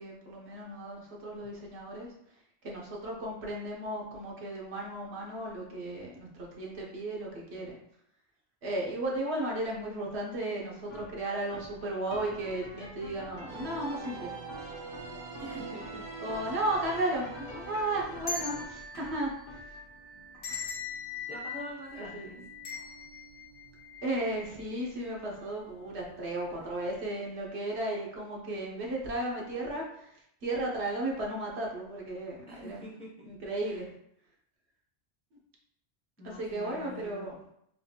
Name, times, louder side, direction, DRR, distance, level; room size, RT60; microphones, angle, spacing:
voice 1, 0.0-2.1 2.6-7.8 8.6-14.3 14.6-14.7 16.2-19.8 22.0-22.4 24.0-32.9 33.2-33.9 36.2-37.4, right 1 dB, 85° right, -2 dB, 1.2 m, -35 dB
sound 1, 10.7-27.9, left 1 dB, 50° left, 0.8 m, -51 dB
sound 2, 13.5-18.7, right 3 dB, 55° right, 0.6 m, -43 dB
voice 2, 15.4-16.1 16.7-16.8 21.3-22.5 32.5-33.3 33.6-33.8 36.2-37.3, equal, 5° left, -4 dB, 0.5 m, -45 dB
sound 3, 17.3-24.5 24.9-25.0 25.9-26.2 26.5-26.7, left 4 dB, 80° left, 1.0 m, -42 dB
4.0 x 2.4 x 2.8 m, 0.74 s
omnidirectional pair, 1.1 m